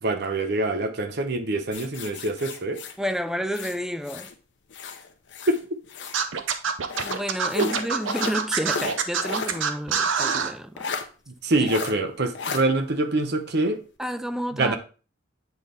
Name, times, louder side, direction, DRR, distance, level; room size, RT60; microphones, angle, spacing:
voice 1, 0.0-2.8 5.5-5.6 7.5-7.7 11.3-13.8 14.5-14.8, right 2 dB, 55° right, 0.8 m, -25 dB
sound 1, 1.7-4.3 4.7-6.2 6.9-9.6 9.9-10.0 10.8-11.0 11.6-11.9 12.3-12.6, left 5 dB, 65° left, 0.7 m, -34 dB
voice 2, 3.0-4.3 7.0-10.9 11.5-11.7 14.0-14.8, equal, ahead, 0.3 m, -30 dB
Scratching (performance technique), 6.1-10.5, right 6 dB, 85° right, 0.7 m, -25 dB
8.1 x 3.5 x 3.9 m
head